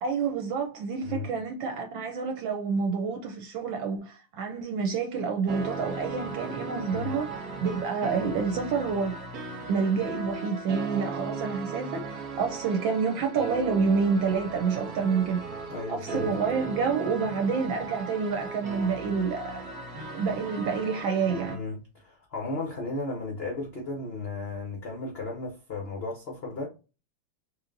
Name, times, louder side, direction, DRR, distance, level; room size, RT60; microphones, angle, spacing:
voice 1, 0.0-9.1 9.7-19.5 20.1-21.6, right 5 dB, 75° right, 1.3 m, -28 dB
sound 1, 5.5-21.6, right 3 dB, 55° right, 1.3 m, -37 dB
voice 2, 15.7-16.3 21.5-26.7, left 3 dB, 90° left, 0.5 m, -35 dB
4.2 x 3.0 x 2.5 m
omnidirectional pair, 2.3 m